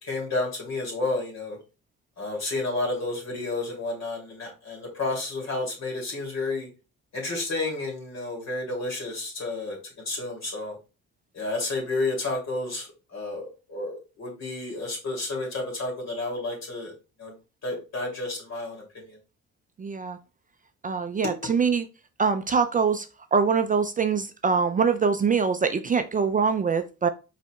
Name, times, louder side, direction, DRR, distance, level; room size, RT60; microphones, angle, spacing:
voice 1, 0.0-1.6 2.2-6.7 7.1-9.8 10.1-10.7 11.3-16.9 17.2-17.3 17.6-19.2, left 2 dB, 60° left, 2.7 m, -31 dB
voice 2, 19.8-20.2 20.8-21.9 22.2-23.1 23.3-27.1, right 5 dB, 30° right, 0.4 m, -23 dB
5.5 x 4.1 x 2.3 m
cardioid pair, 90°, 30 cm